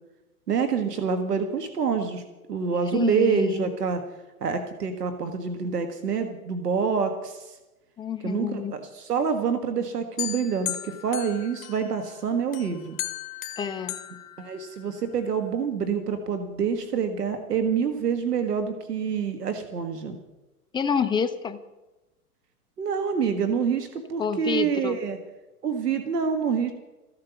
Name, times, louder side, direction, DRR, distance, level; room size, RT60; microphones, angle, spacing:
voice 1, 0.5-2.2 2.5-4.0 4.4-7.6 8.2-13.0 14.4-20.2 22.8-25.2 25.6-26.7, right 6 dB, 90° right, 7 dB, 1.6 m, -27 dB
voice 2, 2.9-3.7 8.0-8.7 13.6-14.0 20.7-21.6 24.2-25.0, left 6 dB, 10° left, 8 dB, 0.5 m, -28 dB
big ben, 10.2-12.1 12.5-15.1, left 12 dB, 55° left, 1.5 m, -36 dB
15.0 x 11.5 x 7.0 m, 1.1 s
hypercardioid pair, 125°, 46 cm